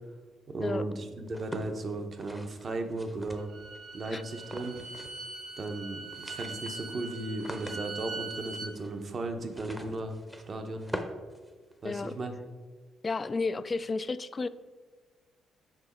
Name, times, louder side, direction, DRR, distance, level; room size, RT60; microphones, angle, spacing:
voice 1, 0.5-3.5 3.9-4.8 5.6-10.1 10.5-10.9 11.8-12.3, right 2 dB, 45° right, 6 dB, 0.9 m, -36 dB
sound 1, 1.3-3.8 4.4-5.3 5.6-5.7 6.0-12.1, equal, 5° right, 0.8 m, -44 dB
Bowed string instrument, 3.4-8.7, right 4 dB, 75° right, 1.8 m, -42 dB
voice 2, 11.8-12.2 13.0-14.5, left 3 dB, 30° left, 15 dB, 0.3 m, -32 dB
6.1 x 4.6 x 4.3 m, 1.4 s
cardioid pair, 90°, 0 cm